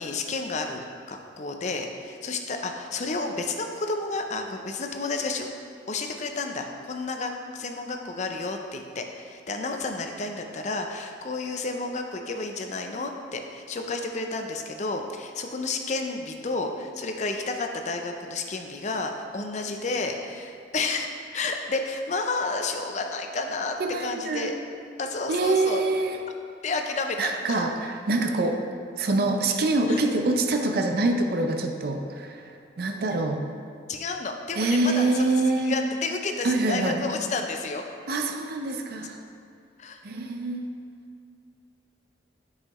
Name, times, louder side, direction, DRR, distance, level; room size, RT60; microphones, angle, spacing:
voice 1, 0.0-5.5 5.9-21.1 21.3-24.5 25.0-25.8 26.6-27.6 29.9-30.0 33.9-35.3 35.6-37.8 39.8-40.0, left 3 dB, 40° left, 4 dB, 0.5 m, -31 dB
voice 2, 23.8-24.5 25.3-26.2 27.2-28.6 29.0-33.4 34.5-35.8 36.4-37.0 38.1-39.2 40.0-40.6, right 2 dB, 55° right, 4 dB, 0.5 m, -25 dB
8.1 x 5.6 x 3.1 m, 2.3 s
head